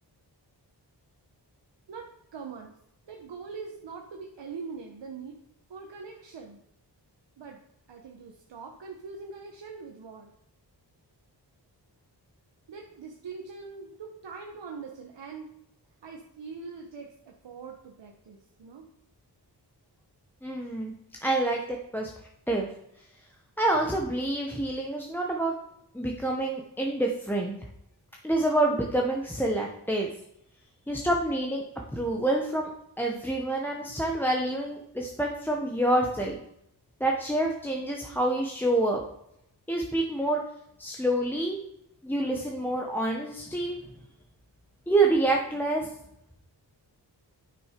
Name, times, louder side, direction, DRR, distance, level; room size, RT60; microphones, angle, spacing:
voice 1, 1.9-2.7 3.1-5.4 5.7-6.6 7.4-7.6 7.9-10.3 12.7-15.5 16.0-18.8, right 5 dB, 85° right, 1 dB, 1.1 m, -42 dB
voice 2, 20.4-20.9 21.2-22.1 22.5-22.7 23.6-25.6 25.9-27.6 28.2-30.1 30.9-31.6 31.9-32.7 33.0-36.3 37.0-39.0 39.7-40.4 40.8-41.6 42.0-43.8 44.9-45.9, right 2 dB, 5° left, -1 dB, 0.9 m, -27 dB
9.6 x 6.1 x 5.1 m, 0.78 s
wide cardioid pair, 130°, 42 cm